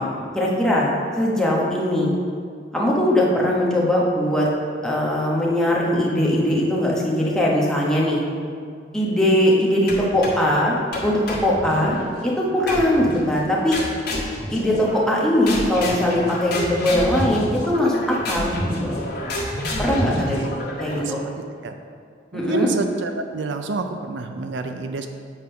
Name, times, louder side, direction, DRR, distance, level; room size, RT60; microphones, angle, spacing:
voice 1, 0.0-2.1 2.7-4.5 4.8-8.2 8.9-10.8 11.0-13.8 14.5-19.1 19.8-20.4 20.8-21.3 22.3-22.7, left 1 dB, 5° left, -4 dB, 1.0 m, -21 dB
sound 1, 9.9-10.5 10.9-12.1 12.7-13.2 13.7-15.2 15.5-21.2, left 1 dB, 55° left, 1.5 m, -28 dB
voice 2, 21.0-21.7 22.3-25.1, right 4 dB, 65° right, 7 dB, 0.4 m, -28 dB
8.1 x 3.7 x 5.6 m, 2.2 s
head